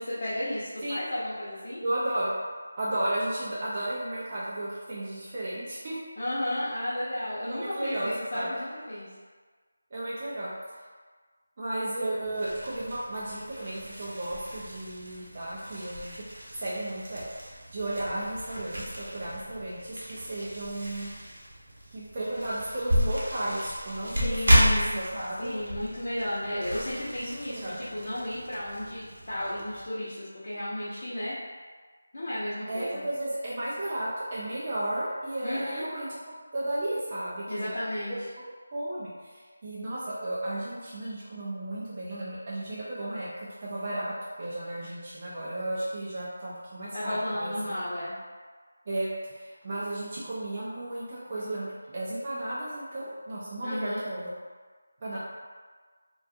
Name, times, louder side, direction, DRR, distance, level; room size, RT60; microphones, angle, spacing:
voice 1, 0.0-1.8 6.2-9.1 24.2-25.0 25.4-31.4 32.1-33.0 35.4-35.9 37.5-38.1 46.9-48.2 53.6-54.0, left 1 dB, 50° left, -10 dB, 0.6 m, -33 dB
voice 2, 1.8-2.3 2.8-6.0 7.5-8.5 9.9-10.5 11.6-16.2 16.5-21.1 21.9-25.5 27.2-27.8 32.7-37.7 38.7-47.8 48.9-54.3 55.0-55.2, right 1 dB, 30° right, -9 dB, 0.4 m, -34 dB
sound 1, 12.2-29.9, equal, 65° right, 0.7 m, -32 dB
2.4 x 2.3 x 2.6 m, 1.5 s
figure-of-eight pair, 170°, 0 cm